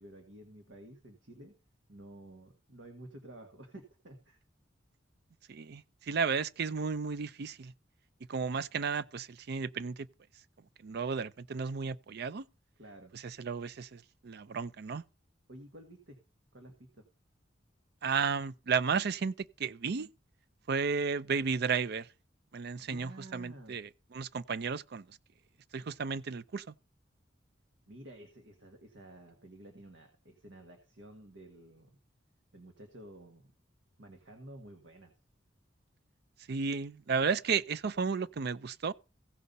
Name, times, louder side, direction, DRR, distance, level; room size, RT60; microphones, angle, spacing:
voice 1, 0.0-1.5 1.9-4.4 12.8-13.1 15.5-16.2 16.5-17.1 22.8-23.8 27.9-31.9 32.5-33.5 34.0-35.1, right 1 dB, 80° right, 1.6 m, -51 dB
voice 2, 5.5-7.7 8.3-10.1 10.8-12.4 13.1-15.0 18.0-19.3 19.6-20.1 20.7-22.1 22.5-25.1 25.7-26.7 36.5-38.9, right 5 dB, 60° right, 0.5 m, -33 dB
16.0 x 5.4 x 4.1 m
head